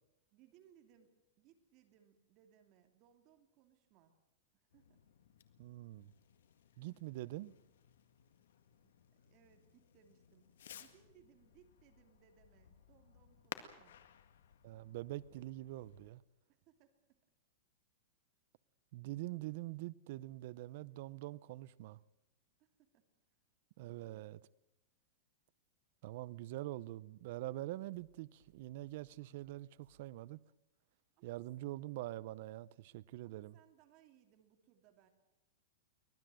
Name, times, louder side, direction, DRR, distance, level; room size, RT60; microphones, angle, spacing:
voice 1, 0.3-4.2 4.7-5.0 6.9-7.1 8.8-14.0 16.6-17.2 22.6-23.0 23.8-24.2 31.1-31.4 33.2-35.1, right 10 dB, 35° right, 2.8 m, -68 dB
Fireworks, 4.7-16.1, left 9 dB, 80° left, 1.9 m, -57 dB
voice 2, 5.6-6.1 6.8-7.6 14.6-16.2 18.9-22.0 23.8-24.4 26.0-30.4 31.2-33.6, right 16 dB, 50° right, 0.7 m, -45 dB
sound 1, 27.8-30.2, right 8 dB, 80° right, 2.2 m, -72 dB
24.0 x 19.0 x 7.8 m
supercardioid pair, 160°, 0 cm